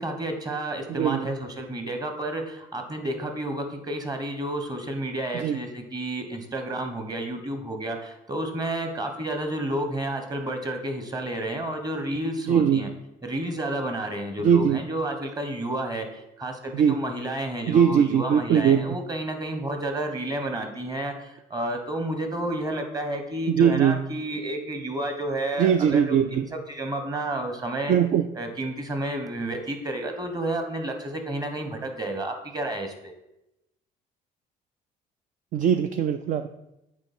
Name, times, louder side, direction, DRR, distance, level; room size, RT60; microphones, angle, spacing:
voice 1, 0.0-12.9 13.2-26.2 26.7-27.9 28.3-33.1, right 1 dB, 20° right, 5 dB, 1.2 m, -31 dB
voice 2, 0.9-1.3 5.3-5.6 12.5-12.9 14.4-14.8 16.7-17.0 17.7-18.8 23.5-24.0 25.6-26.5 27.9-28.3 35.5-36.5, right 8 dB, 50° right, 9 dB, 0.4 m, -21 dB
8.8 x 4.3 x 4.3 m, 0.89 s
cardioid pair, 110°, 17 cm